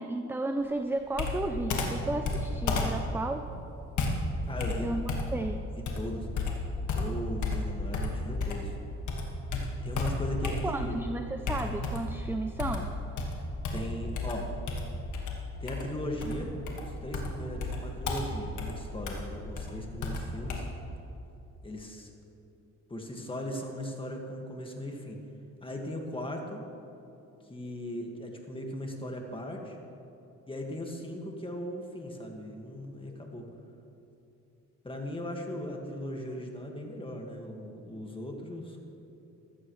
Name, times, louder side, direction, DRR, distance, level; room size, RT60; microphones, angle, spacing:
voice 1, 0.0-3.4 4.8-5.0 5.3-5.6 10.6-12.9, right 2 dB, 5° right, 6 dB, 0.5 m, -33 dB
Computer keyboard, 1.1-8.8 9.1-11.0 11.5-12.2 12.6-20.6, left 3 dB, 75° left, 1.8 m, -33 dB
voice 2, 4.5-4.9 5.8-6.3 6.9-8.8 9.8-11.0 13.7-14.5 15.6-16.5 16.8-20.7 21.6-22.1 22.9-25.2 25.6-26.6 27.5-29.8 30.5-33.5 34.8-38.8, left 1 dB, 15° left, 1 dB, 1.9 m, -38 dB
15.0 x 12.5 x 3.2 m, 2.8 s
cardioid pair, 90°, 30 cm